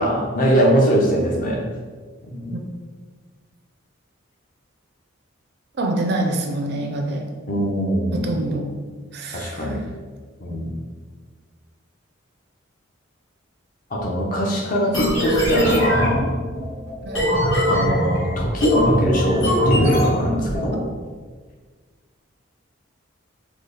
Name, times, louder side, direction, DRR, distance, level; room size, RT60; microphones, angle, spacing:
voice 1, 0.0-1.7 2.3-2.6 7.5-8.4 9.3-9.8 10.4-10.7 13.9-16.3 17.7-20.9, equal, 40° left, -1 dB, 0.5 m, -22 dB
voice 2, 5.8-7.3 8.1-8.7 9.1-9.8 10.5-10.7 17.0-17.3, right 2 dB, 50° right, 3 dB, 0.4 m, -26 dB
sound 1, 14.9-20.7, equal, 75° left, 1.5 m, -21 dB
4.1 x 2.0 x 3.2 m, 1.5 s
head